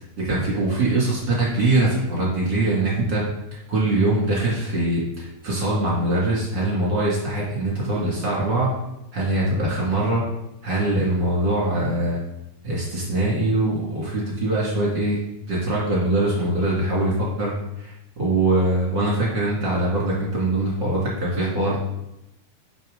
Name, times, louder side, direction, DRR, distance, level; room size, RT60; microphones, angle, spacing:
voice 1, 0.2-3.2 3.5-8.7 9.1-10.2 10.6-12.2 12.6-15.2 15.5-17.1 17.4-21.8, right 2 dB, 35° right, -6 dB, 2.3 m, -22 dB
10.5 x 6.3 x 3.9 m, 0.88 s
omnidirectional pair, 4.5 m